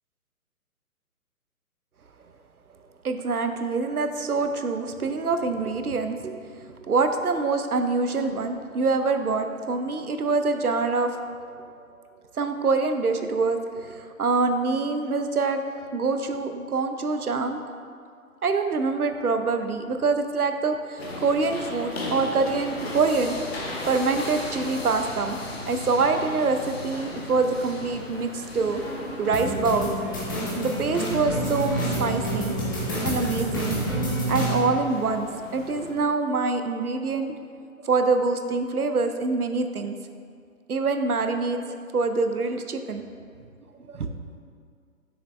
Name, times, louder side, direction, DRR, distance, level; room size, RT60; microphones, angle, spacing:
voice 1, 3.0-11.6 12.4-15.6 15.9-17.6 18.4-23.4 23.9-25.4 25.7-28.8 29.2-29.9 30.6-32.6 33.0-33.8 34.3-37.3 37.8-40.0 40.7-41.6 41.9-43.0 43.9-44.1, right 4 dB, 80° right, 7 dB, 0.7 m, -25 dB
sound 1, 21.0-35.9, left 2 dB, 45° left, 1.1 m, -37 dB
sound 2, 29.3-34.6, right 1 dB, 15° left, 0.6 m, -28 dB
6.7 x 6.5 x 3.2 m, 2.2 s
figure-of-eight pair, 135°, 44 cm